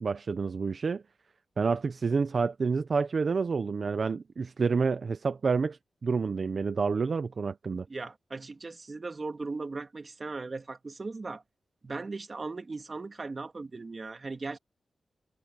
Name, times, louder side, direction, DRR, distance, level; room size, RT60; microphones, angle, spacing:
voice 1, 0.0-1.0 1.6-7.9, right 5 dB, 60° right, 0.8 m, -29 dB
voice 2, 7.9-11.4 11.8-14.6, right 3 dB, 45° right, 2.4 m, -38 dB
cardioid pair, 65°, 0 cm